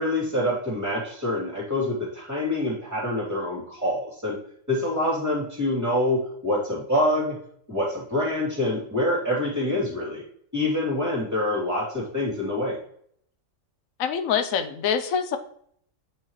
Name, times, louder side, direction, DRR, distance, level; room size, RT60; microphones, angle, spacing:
voice 1, 0.0-4.4 4.7-7.4 7.7-10.2 10.5-12.8, left 1 dB, 10° right, -5 dB, 2.7 m, -26 dB
voice 2, 14.0-15.4, left 7 dB, 90° left, 8 dB, 1.1 m, -25 dB
8.6 x 4.6 x 3.1 m, 0.65 s
omnidirectional pair, 1.4 m